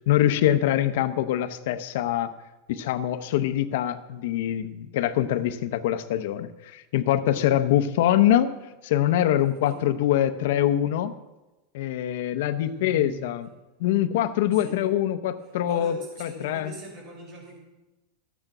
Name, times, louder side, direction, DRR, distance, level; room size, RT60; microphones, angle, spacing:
voice 1, 0.0-2.3 2.7-8.5 8.8-11.1 11.7-13.5 13.8-16.7, left 12 dB, 65° left, 10 dB, 0.7 m, -24 dB
voice 2, 9.4-9.8 12.5-13.4 14.6-14.8 15.6-17.6, right 2 dB, 45° right, -1 dB, 5.5 m, -43 dB
13.5 x 9.1 x 6.0 m, 1.1 s
supercardioid pair, 165°, 0 cm